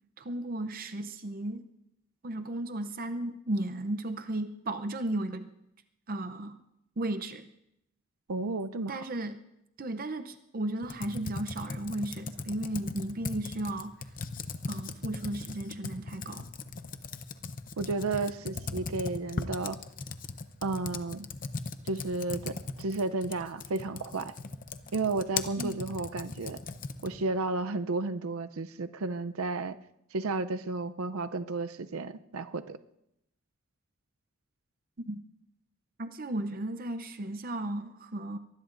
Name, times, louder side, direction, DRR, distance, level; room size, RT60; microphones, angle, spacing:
voice 1, 0.2-1.6 2.2-5.5 6.1-6.6 7.0-7.5 8.9-9.4 9.8-13.9 14.7-16.4 25.6-25.7 35.1-35.2 36.0-38.4, right 1 dB, 45° right, 9 dB, 0.7 m, -34 dB
voice 2, 8.3-9.0 17.8-19.8 20.6-21.3 21.8-24.3 24.9-26.6 27.0-29.8 30.1-32.8, right 3 dB, 90° right, 10 dB, 0.6 m, -32 dB
Computer keyboard, 10.8-27.3, left 4 dB, 40° left, 0.8 m, -39 dB
24.0 x 19.5 x 2.6 m, 0.80 s
head